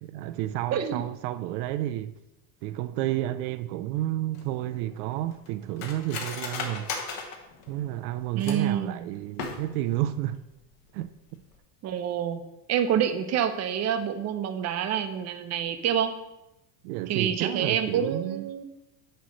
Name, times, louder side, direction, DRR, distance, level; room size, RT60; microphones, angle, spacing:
voice 1, 0.0-2.1 2.6-7.1 7.7-10.4 10.9-11.4 16.8-18.5, right 14 dB, 80° right, 0.6 m, -31 dB
voice 2, 0.7-1.0 8.3-9.0 11.8-12.4 12.7-16.1 17.1-18.6, right 9 dB, 35° right, 0.7 m, -27 dB
Cutlery silverware, 4.3-8.8 9.3-10.0 10.3-10.4 10.7-11.1 11.4-11.6, left 5 dB, 50° left, 1.4 m, -37 dB
8.5 x 3.1 x 6.2 m
supercardioid pair, 135°, 45 cm